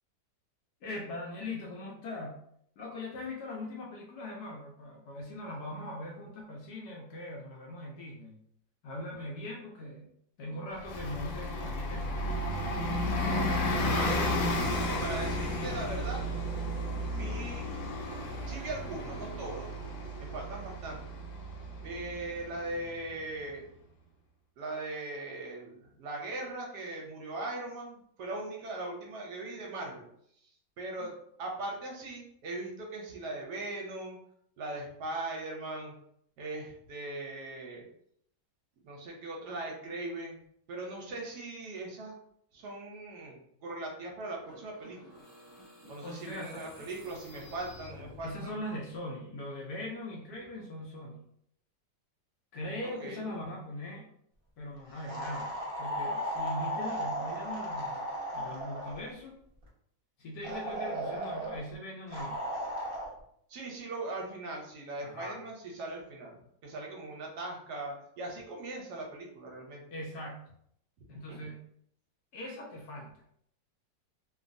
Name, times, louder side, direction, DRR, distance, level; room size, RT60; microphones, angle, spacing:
voice 1, 0.8-2.3 2.8-8.4 8.8-10.1 10.4-12.2 31.0-31.1 46.0-46.9 48.2-51.2 52.5-54.1 54.6-59.4 60.2-62.4 65.0-65.4 69.9-70.5 71.1-71.7 72.3-73.1, left 1 dB, 70° left, -2 dB, 0.9 m, -41 dB
Bus, 10.8-23.1, left 1 dB, 90° left, 1.3 m, -33 dB
voice 2, 13.2-14.4 14.8-16.2 17.1-17.6 18.5-19.7 20.2-21.0 21.8-23.7 24.6-30.0 30.8-31.1 31.4-34.2 34.6-35.9 36.4-37.9 38.8-40.4 40.7-42.2 42.5-45.2 45.9-48.6 53.0-53.2 63.5-69.8 71.1-71.4, right 2 dB, 70° right, -1 dB, 1.1 m, -40 dB
sound 1, 44.4-48.6, left 1 dB, ahead, 0.7 m, -52 dB
sound 2, 55.1-59.1 60.4-61.6 62.1-63.1, equal, 45° right, 0.4 m, -35 dB
3.0 x 2.2 x 2.5 m, 0.69 s
omnidirectional pair, 2.0 m